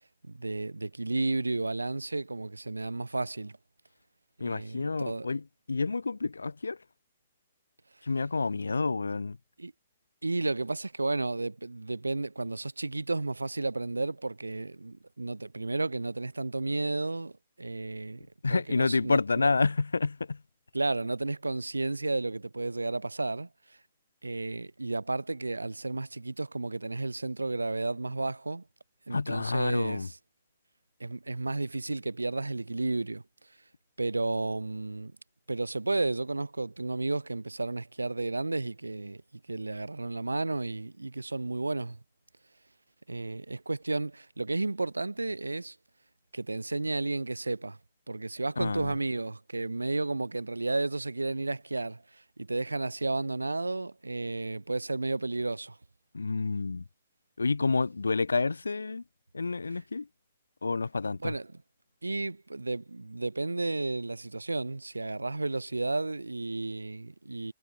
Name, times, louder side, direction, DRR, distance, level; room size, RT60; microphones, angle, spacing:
voice 1, 0.3-3.6 4.4-5.3 9.6-9.7 10.2-19.2 20.7-23.8 24.2-28.6 29.1-30.2 31.0-33.2 34.0-35.1 35.5-39.2 39.5-42.0 43.1-45.8 46.3-47.8 48.1-55.8 61.2-61.5 62.0-67.5, right 2 dB, 85° right, 0.4 m, -32 dB
voice 2, 4.4-6.8 8.0-9.4 18.4-20.4 29.1-30.1 48.6-48.9 56.1-56.8 57.4-59.0 59.3-60.1 60.6-61.3, left 4 dB, 80° left, 0.3 m, -29 dB
figure-of-eight pair, 120°, 0 cm